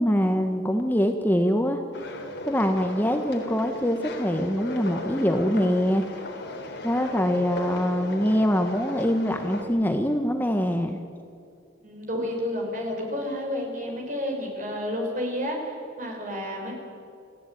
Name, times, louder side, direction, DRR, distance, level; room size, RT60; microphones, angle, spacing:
voice 1, 0.0-1.8 2.4-6.0 6.8-11.0, equal, 10° left, 5 dB, 1.1 m, -24 dB
sound 1, 1.9-9.6, left 1 dB, 65° left, 3.7 m, -36 dB
voice 2, 11.8-16.7, left 1 dB, 45° right, 1 dB, 5.5 m, -30 dB
29.0 x 15.5 x 9.3 m, 2.4 s
head